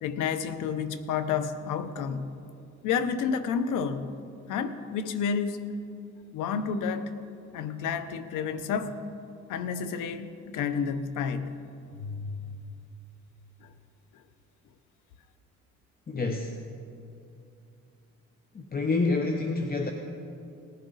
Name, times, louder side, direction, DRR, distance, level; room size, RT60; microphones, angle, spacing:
voice 1, 0.0-2.3 2.8-4.2 4.5-5.7 6.3-7.1 7.5-9.0 9.5-11.5 11.9-12.7 13.6-13.7, left 6 dB, 90° left, 11 dB, 0.8 m, -30 dB
voice 2, 16.1-16.6 18.5-19.9, left 3 dB, 30° left, 4 dB, 0.9 m, -28 dB
18.5 x 11.0 x 4.0 m, 2.6 s
cardioid pair, 90°, 30 cm